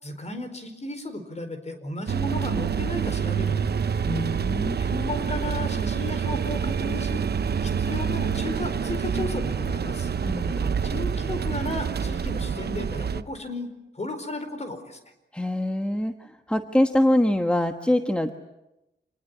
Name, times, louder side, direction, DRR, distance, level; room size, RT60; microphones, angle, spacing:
voice 1, 0.0-3.6 4.8-7.2 7.6-10.1 10.8-13.7 13.9-15.0, left 2 dB, 35° left, 8 dB, 4.7 m, -34 dB
sound 1, 2.1-13.2, right 6 dB, 60° right, 0.9 m, -27 dB
voice 2, 4.0-4.8 10.2-10.8 15.3-18.3, left 1 dB, 5° left, 6 dB, 1.3 m, -24 dB
27.5 x 20.0 x 9.8 m, 0.92 s
wide cardioid pair, 105°, 19 cm